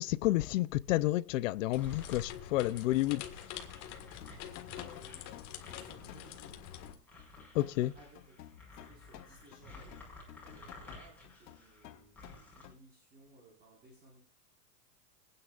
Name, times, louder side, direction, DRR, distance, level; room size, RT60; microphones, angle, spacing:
voice 1, 0.0-3.2 7.5-7.9, left 17 dB, 55° left, 0.6 m, -30 dB
sound 1, 1.7-6.9, left 10 dB, 35° left, 1.8 m, -46 dB
sound 2, 1.8-12.6, left 2 dB, 5° left, 5.7 m, -54 dB
sound 3, 4.0-12.8, left 12 dB, 80° left, 1.4 m, -53 dB
voice 2, 4.8-6.6 7.7-8.4 8.7-10.0 10.4-14.2, equal, 20° right, 5.0 m, -59 dB
25.0 x 9.5 x 2.5 m
supercardioid pair, 155°, 48 cm